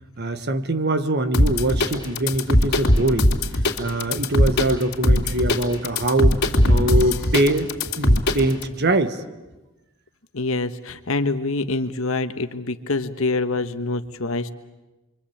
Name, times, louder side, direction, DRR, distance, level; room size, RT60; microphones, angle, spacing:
voice 1, 0.2-3.4 3.8-6.4 6.7-7.7 8.0-9.2, right 1 dB, 50° right, 10 dB, 1.4 m, -23 dB
sound 1, 1.3-8.7, left 1 dB, 50° left, 3.5 m, -19 dB
voice 2, 10.3-14.5, left 3 dB, 65° left, 9 dB, 1.4 m, -25 dB
28.0 x 24.0 x 8.7 m, 1.1 s
head